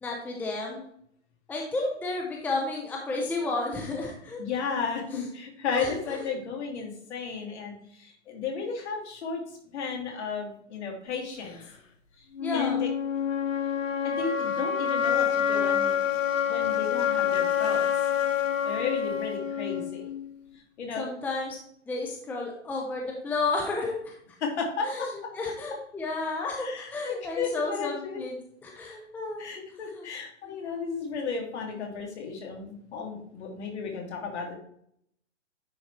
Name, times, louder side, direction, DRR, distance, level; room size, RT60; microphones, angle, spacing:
voice 1, 0.0-0.8 1.5-4.5 5.8-6.2 12.4-12.8 21.0-21.6 21.9-24.1 24.8-29.4 29.9-30.0 30.4-30.5, left 3 dB, 5° left, -1 dB, 0.7 m, -32 dB
voice 2, 4.4-9.4 9.7-11.6 12.5-12.9 14.0-15.9 16.5-17.9 18.6-20.1 20.8-21.1 24.4-25.1 26.6-28.2 29.4-34.5, left 5 dB, 60° left, 0 dB, 2.7 m, -34 dB
sound 1, 12.4-20.3, left 8 dB, 90° left, 1.1 m, -27 dB
9.9 x 4.2 x 3.3 m, 0.69 s
hypercardioid pair, 135°, 37 cm